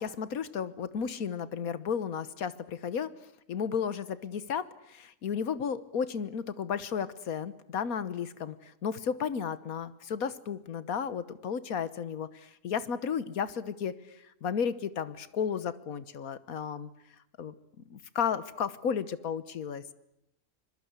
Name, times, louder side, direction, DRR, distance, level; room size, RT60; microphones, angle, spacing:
voice 1, 0.0-3.1 3.5-16.9 17.4-19.9, left 7 dB, 75° left, 14 dB, 1.6 m, -33 dB
25.5 x 22.0 x 8.2 m, 0.82 s
omnidirectional pair, 1.5 m